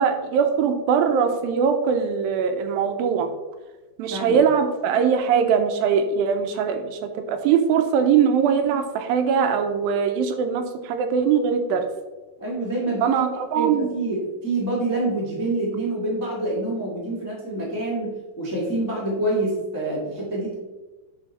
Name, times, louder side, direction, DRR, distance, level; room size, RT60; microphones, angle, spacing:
voice 1, 0.0-3.3 4.0-11.8 13.0-13.9, right 7 dB, 80° right, 6 dB, 2.3 m, -21 dB
voice 2, 12.4-13.2 13.5-20.5, right 2 dB, 25° left, -5 dB, 0.4 m, -26 dB
9.8 x 4.0 x 4.1 m, 1.2 s
omnidirectional pair, 4.3 m